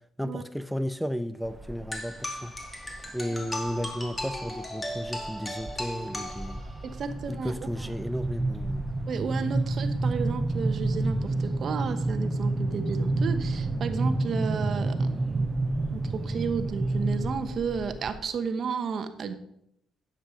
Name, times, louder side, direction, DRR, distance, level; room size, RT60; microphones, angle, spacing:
voice 1, 0.2-2.5 3.1-6.6 7.3-8.8, equal, ahead, 10 dB, 0.5 m, -33 dB
sound 1, 1.4-2.0 2.5-3.0 3.7-4.5 4.9-5.3 5.6-18.2, right 2 dB, 20° right, 1.1 m, -29 dB
sound 2, 1.9-6.9, left 1 dB, 20° left, 2.3 m, -37 dB
voice 2, 6.8-7.5 9.1-15.4 15.9-19.3, right 6 dB, 55° right, 9 dB, 1.1 m, -33 dB
10.0 x 7.4 x 5.1 m, 0.76 s
cardioid pair, 90°, 0 cm